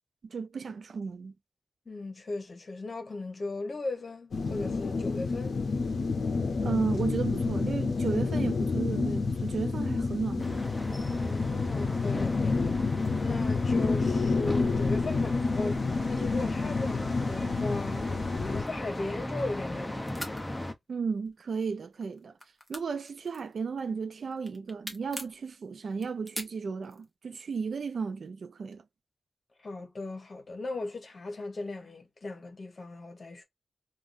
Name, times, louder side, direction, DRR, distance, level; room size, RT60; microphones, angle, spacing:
voice 1, 0.2-1.3 6.6-10.6 20.9-22.3 22.7-28.8, right 5 dB, 70° right, 0.3 m, -34 dB
voice 2, 1.9-5.6 11.2-12.7 13.2-15.8 16.1-18.1 18.4-20.3 29.6-33.4, left 2 dB, 45° left, 1.1 m, -37 dB
sound 1, 4.3-18.6, left 4 dB, 70° left, 0.6 m, -29 dB
sound 2, 10.4-20.7, left 1 dB, 15° left, 0.6 m, -37 dB
sound 3, 18.7-19.7 20.0-20.4 21.1-21.6 21.9-23.9 24.3-25.4 25.9-27.1, equal, 5° right, 1.0 m, -42 dB
3.5 x 2.4 x 2.5 m
wide cardioid pair, 95°, 0 cm